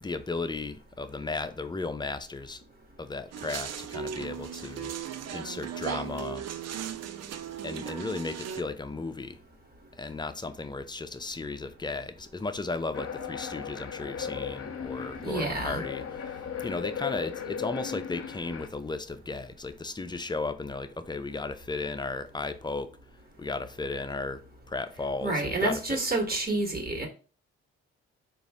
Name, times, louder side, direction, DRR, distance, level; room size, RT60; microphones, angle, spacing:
voice 1, 0.0-2.6 3.0-5.0 5.3-6.5 7.6-9.4 10.0-22.9 23.4-26.0, left 3 dB, 15° left, 0.5 m, -35 dB
sound 1, 3.3-8.6, right 8 dB, 60° right, 0.5 m, -37 dB
sound 2, 12.9-18.7, left 7 dB, 50° left, 0.8 m, -37 dB
voice 2, 15.2-15.8 25.2-27.1, right 2 dB, 30° right, 1.5 m, -29 dB
3.9 x 2.6 x 3.5 m
supercardioid pair, 55°, 29 cm